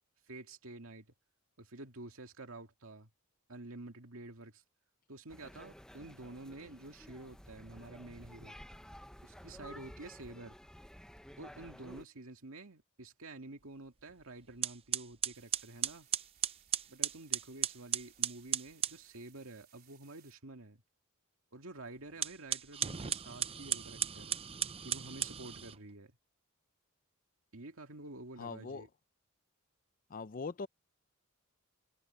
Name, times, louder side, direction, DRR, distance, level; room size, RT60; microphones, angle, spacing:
voice 1, 0.3-1.1 1.6-3.1 3.5-4.6 5.1-8.6 9.2-10.6 11.4-16.1 16.9-20.8 21.5-24.4 24.8-26.1 27.5-28.9, right 2 dB, 70° right, 2.3 m, -49 dB
sound 1, 5.3-12.1, equal, 5° left, 0.8 m, -53 dB
sound 2, 14.1-14.2 14.6-19.0 22.1-25.8, right 9 dB, 25° right, 0.6 m, -36 dB
sound 3, 15.3-20.3, right 11 dB, 45° right, 4.5 m, -65 dB
voice 2, 28.4-28.9 30.1-30.7, left 4 dB, 40° left, 0.5 m, -41 dB
head